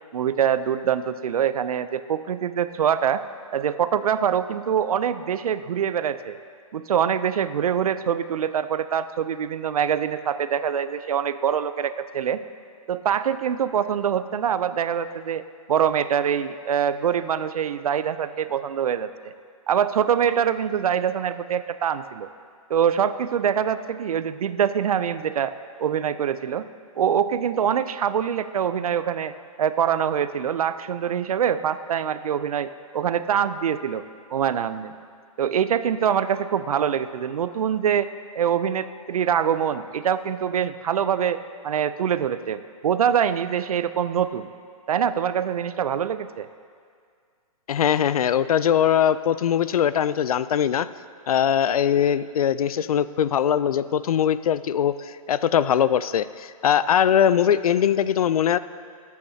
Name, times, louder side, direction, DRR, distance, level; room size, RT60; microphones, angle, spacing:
voice 1, 0.1-3.2 3.5-6.4 6.7-12.4 12.9-19.3 19.7-22.3 22.7-25.5 25.8-26.7 27.0-34.1 34.3-34.9 35.4-38.1 38.3-41.4 41.6-44.5 44.9-46.5, right 8 dB, 75° right, 13 dB, 0.5 m, -24 dB
voice 2, 47.7-50.9 51.3-58.6, left 9 dB, 75° left, 15 dB, 0.4 m, -21 dB
19.0 x 8.4 x 2.8 m, 2.2 s
hypercardioid pair, 160°, 19 cm